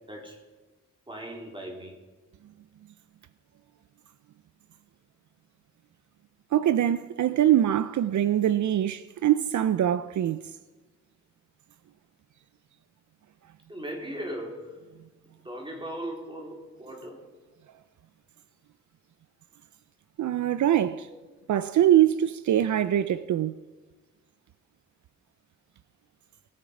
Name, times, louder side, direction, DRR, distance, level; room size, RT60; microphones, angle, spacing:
voice 1, 1.1-2.0 13.7-14.7 15.4-17.2 21.1-21.2, right 1 dB, 15° right, 3.2 m, -38 dB
voice 2, 6.5-10.4 20.2-21.1 21.5-23.5, right 11 dB, 75° right, 0.5 m, -23 dB
20.0 x 8.7 x 4.9 m
wide cardioid pair, 120°, 29 cm